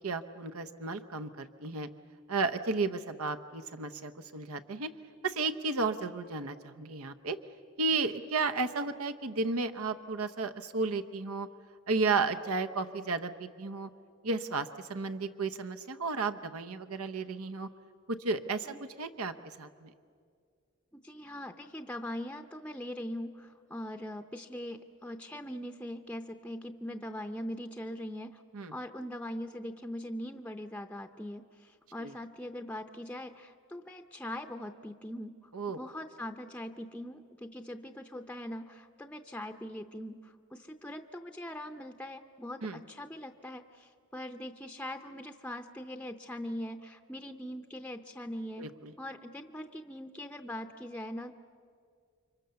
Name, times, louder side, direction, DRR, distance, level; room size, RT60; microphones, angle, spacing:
voice 1, 0.0-1.9 2.3-4.9 5.2-7.4 7.8-11.5 11.9-13.9 14.2-17.7 18.2-19.3 19.6-19.9 28.5-28.7 32.0-32.1 35.5-35.8 42.6-42.8 48.6-48.9, right 3 dB, 90° right, 8 dB, 0.9 m, -33 dB
voice 2, 20.9-28.4 28.7-48.7 49.0-51.4, left 1 dB, 5° left, 7 dB, 0.6 m, -41 dB
29.5 x 25.0 x 6.9 m, 2.2 s
head